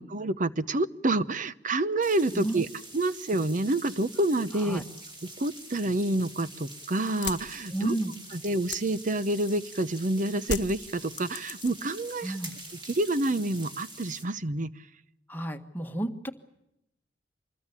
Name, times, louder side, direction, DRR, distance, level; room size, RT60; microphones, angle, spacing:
voice 1, 0.0-2.7 2.9-4.8 5.4-7.9 8.3-12.4 12.8-14.7, right 2 dB, 45° right, 14 dB, 0.9 m, -28 dB
sound 1, 2.0-14.2, right 2 dB, 30° right, 5.3 m, -46 dB
sound 2, 7.2-9.8 10.4-12.0 12.3-12.8, left 6 dB, 85° left, 1.0 m, -38 dB
voice 2, 7.7-8.1 12.2-12.5 15.3-16.3, right 1 dB, 10° left, 5 dB, 1.6 m, -31 dB
26.0 x 21.0 x 8.4 m, 0.85 s
head